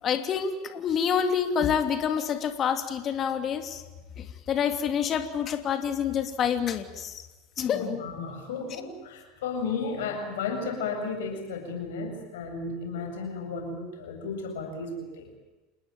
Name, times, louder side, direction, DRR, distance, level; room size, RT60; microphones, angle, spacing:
voice 1, 0.0-3.8 4.2-7.2 7.6-8.0, left 7 dB, 40° left, 8 dB, 3.0 m, -27 dB
voice 2, 7.6-15.3, left 4 dB, 75° left, 4 dB, 7.9 m, -34 dB
28.0 x 20.5 x 9.1 m, 1.1 s
hypercardioid pair, 85°, 0 cm